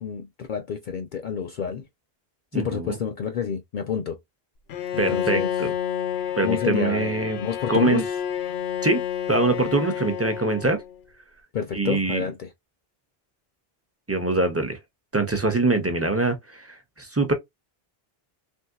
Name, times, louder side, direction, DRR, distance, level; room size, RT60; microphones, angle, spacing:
voice 1, 0.0-1.9 2.5-4.2 4.9-5.5 6.4-8.1 11.5-12.5, left 7 dB, 60° left, 0.6 m, -29 dB
voice 2, 2.5-3.0 5.0-5.7 6.4-7.4 7.7-8.0 8.8-9.0 9.3-10.8 11.7-12.2 14.1-14.8 15.1-17.3, right 3 dB, 20° right, 0.5 m, -24 dB
Bowed string instrument, 4.7-11.0, left 9 dB, 85° left, 0.9 m, -29 dB
3.4 x 2.7 x 2.2 m
omnidirectional pair, 1.0 m